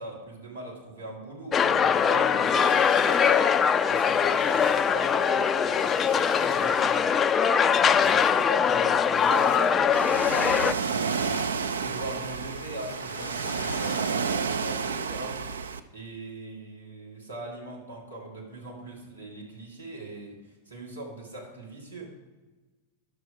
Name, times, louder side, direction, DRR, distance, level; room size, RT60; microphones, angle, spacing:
voice 1, 0.0-3.3 3.9-7.1 7.7-15.4 15.9-22.1, right 2 dB, 85° right, -5 dB, 2.6 m, -40 dB
sound 1, 1.5-10.7, left 7 dB, 20° left, 0.4 m, -22 dB
sound 2, 2.0-15.1, left 8 dB, 60° left, 0.7 m, -45 dB
Ocean, 9.9-15.8, right 6 dB, 70° right, 0.5 m, -30 dB
10.5 x 6.4 x 4.7 m, 1.2 s
figure-of-eight pair, 90°, 0 cm